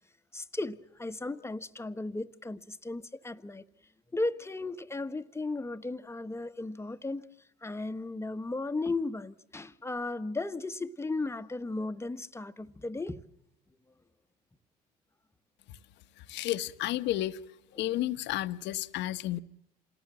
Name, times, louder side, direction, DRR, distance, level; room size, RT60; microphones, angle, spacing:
voice 1, 0.3-3.6 4.1-7.2 7.6-13.2, left 2 dB, 10° left, 1.3 m, -35 dB
voice 2, 16.3-17.4 17.8-19.4, left 14 dB, 60° left, 1.1 m, -31 dB
28.0 x 19.0 x 7.5 m
hypercardioid pair, 65°, 21 cm